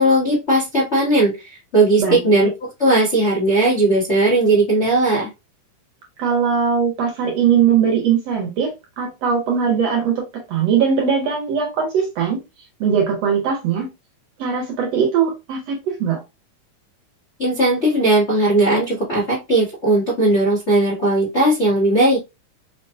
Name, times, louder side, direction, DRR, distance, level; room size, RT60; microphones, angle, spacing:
voice 1, 0.0-5.3 17.4-22.2, right 2 dB, 60° left, 0.7 m, -17 dB
voice 2, 6.2-10.2 10.5-12.4 12.8-13.9 14.4-16.2, right 7 dB, 65° right, 1.8 m, -20 dB
4.8 x 3.0 x 2.2 m
omnidirectional pair, 3.8 m